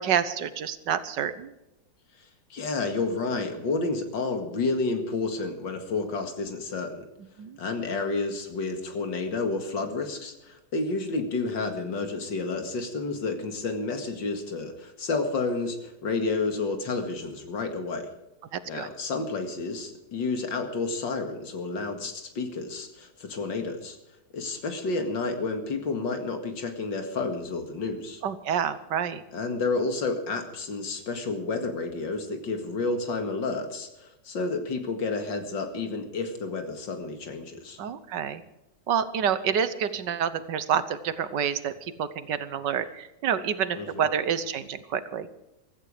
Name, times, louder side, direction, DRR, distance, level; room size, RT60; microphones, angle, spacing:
voice 1, 0.0-1.5 7.4-7.6 18.5-18.9 28.2-29.2 37.8-38.4 38.9-45.3, right 8 dB, 75° right, 13 dB, 1.6 m, -28 dB
voice 2, 2.5-7.1 7.6-18.1 18.7-24.0 24.3-28.2 29.3-37.8 43.7-44.1, left 3 dB, 90° left, 6 dB, 2.7 m, -30 dB
16.0 x 14.0 x 5.0 m, 0.96 s
omnidirectional pair, 2.0 m